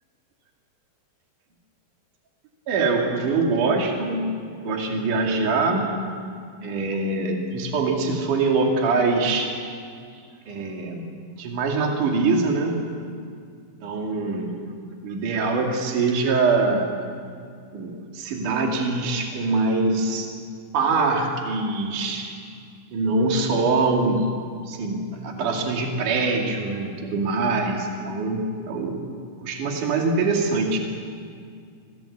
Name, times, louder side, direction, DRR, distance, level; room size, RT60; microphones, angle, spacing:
voice 1, 2.7-5.9 6.6-9.5 10.5-11.1 11.4-12.8 13.8-14.6 15.0-16.9 17.7-20.3 20.7-22.3 22.9-24.3 24.7-29.0 29.4-30.8, right 3 dB, 50° right, 1 dB, 3.8 m, -23 dB
25.0 x 17.5 x 8.5 m, 2.2 s
omnidirectional pair, 4.8 m